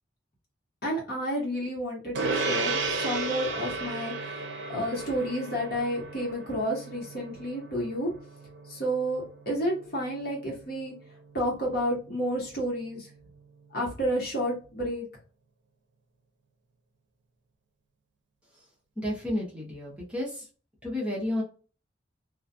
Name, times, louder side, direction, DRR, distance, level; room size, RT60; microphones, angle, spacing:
voice 1, 0.8-4.1 4.7-8.1 8.7-10.9 11.3-13.1 13.7-15.1, equal, 55° left, -2 dB, 1.1 m, -30 dB
Gong, 2.2-11.9, right 3 dB, 70° right, 0.5 m, -35 dB
voice 2, 19.0-20.4 20.8-21.4, left 1 dB, 5° right, -5 dB, 0.7 m, -31 dB
2.4 x 2.3 x 2.6 m, 0.37 s
head